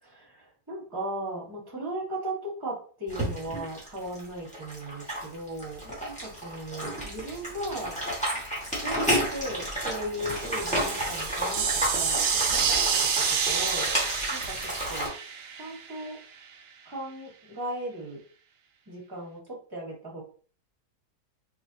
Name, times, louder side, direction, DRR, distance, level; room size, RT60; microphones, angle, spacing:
voice 1, 0.0-5.8 6.0-8.0 8.8-13.0 13.3-13.9 14.3-15.1 15.6-16.2 16.8-18.2 18.9-20.2, right 1 dB, 15° right, -3 dB, 1.4 m, -37 dB
sound 1, 3.1-15.1, equal, 5° left, 1.3 m, -31 dB
sound 2, 10.2-16.1, right 6 dB, 90° right, 0.5 m, -29 dB
4.0 x 3.0 x 2.7 m, 0.41 s
omnidirectional pair, 1.7 m